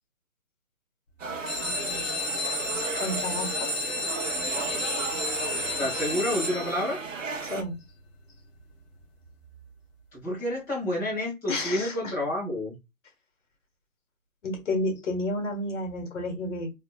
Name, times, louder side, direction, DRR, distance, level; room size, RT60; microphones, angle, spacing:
sound 1, 1.2-7.6, right 4 dB, 65° right, 0.9 m, -35 dB
sound 2, 1.3-7.1 7.7-8.2 8.6-8.7 8.9-9.0 9.4-9.6, left 1 dB, 40° left, 1.6 m, -31 dB
voice 1, 3.0-3.7 7.4-7.8 11.5-12.2 14.4-16.7, left 2 dB, 55° left, 1.5 m, -31 dB
voice 2, 5.8-7.0 10.1-12.8, left 1 dB, 5° left, 1.1 m, -29 dB
3.5 x 2.8 x 2.2 m
figure-of-eight pair, 150°, 42 cm